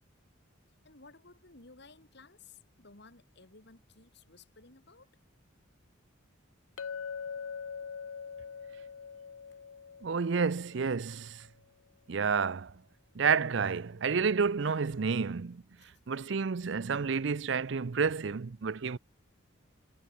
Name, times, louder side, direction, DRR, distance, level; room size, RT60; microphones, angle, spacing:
voice 1, 0.8-5.1 9.5-9.6 15.8-15.9, left 3 dB, 55° left, 2.6 m, -56 dB
Chink clink, 6.8-11.2, left 6 dB, 85° left, 0.6 m, -43 dB
voice 2, 10.0-11.5 12.1-12.7 13.1-15.6 16.1-19.0, right 5 dB, 60° right, 0.5 m, -30 dB
head